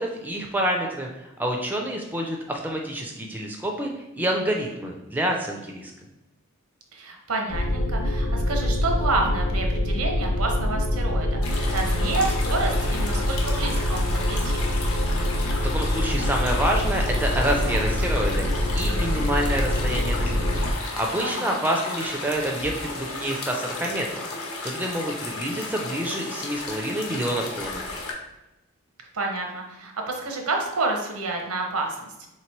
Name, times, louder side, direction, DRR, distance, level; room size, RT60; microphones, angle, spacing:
voice 1, 0.0-3.9 4.1-5.9 15.7-18.5 18.7-24.1 24.6-27.8, right 1 dB, 10° right, 1 dB, 0.3 m, -28 dB
voice 2, 6.9-14.6 21.2-21.6 29.1-32.3, right 3 dB, 90° right, 2 dB, 0.8 m, -29 dB
sound 1, 7.5-20.7, left 1 dB, 65° left, 0.5 m, -25 dB
sound 2, 11.4-28.1, left 2 dB, 85° left, 0.9 m, -34 dB
3.2 x 3.0 x 4.5 m, 0.93 s
head